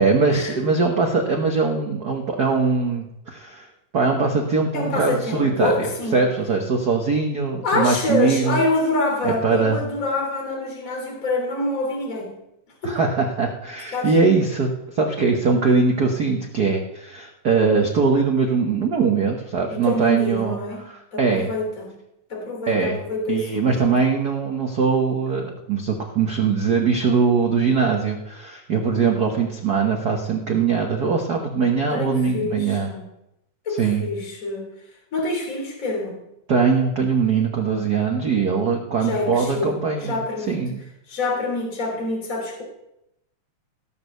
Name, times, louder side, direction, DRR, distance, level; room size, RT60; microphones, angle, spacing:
voice 1, 0.0-3.7 3.9-8.6 9.2-9.8 12.8-20.6 21.2-21.5 22.7-23.0 23.3-32.9 33.8-34.0 36.5-40.2 40.5-40.8, right 5 dB, 85° right, 2 dB, 0.8 m, -21 dB
voice 2, 4.7-6.3 7.6-12.3 12.8-13.0 13.9-14.1 19.7-20.8 21.1-22.0 22.3-24.0 29.2-29.4 31.9-33.0 33.6-34.7 35.1-36.2 39.0-40.6 41.1-42.6, left 2 dB, 25° left, 0 dB, 3.2 m, -26 dB
17.0 x 6.4 x 6.7 m, 0.85 s
omnidirectional pair, 3.6 m